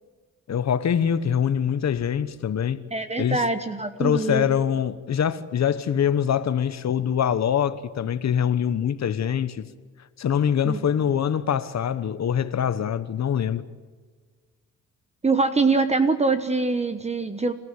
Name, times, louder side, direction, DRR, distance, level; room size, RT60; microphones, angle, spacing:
voice 1, 0.5-2.8 3.2-3.4 4.0-9.6 10.2-13.6, left 8 dB, 55° left, 1.2 m, -24 dB
voice 2, 2.9-4.5 10.6-10.8 15.2-17.5, right 3 dB, 20° right, 1.2 m, -23 dB
27.5 x 15.0 x 9.7 m
cardioid pair, 105°, 32 cm